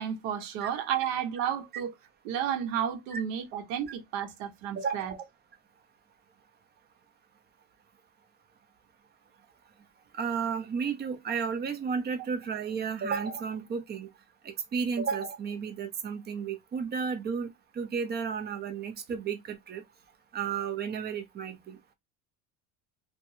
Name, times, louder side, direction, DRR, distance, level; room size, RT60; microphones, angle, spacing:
voice 1, 0.0-1.9 2.2-5.2, right 9 dB, 90° right, 1.0 m, -32 dB
voice 2, 4.7-5.2 10.1-14.1 14.4-17.5 17.7-19.8 20.3-21.8, right 6 dB, 25° right, 0.6 m, -33 dB
2.9 x 2.2 x 2.7 m
cardioid pair, 130°, 38 cm